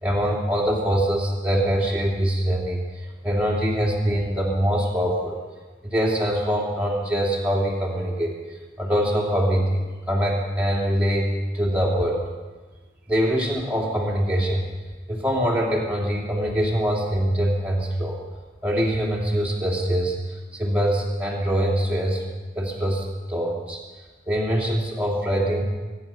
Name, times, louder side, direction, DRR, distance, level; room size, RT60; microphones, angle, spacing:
voice 1, 0.0-5.4 5.8-8.4 8.8-11.3 11.5-12.2 13.1-14.6 15.1-18.2 18.6-22.2 22.5-23.8 24.3-25.6, equal, 5° right, -3 dB, 2.8 m, -23 dB
24.5 x 9.8 x 5.8 m, 1.3 s
head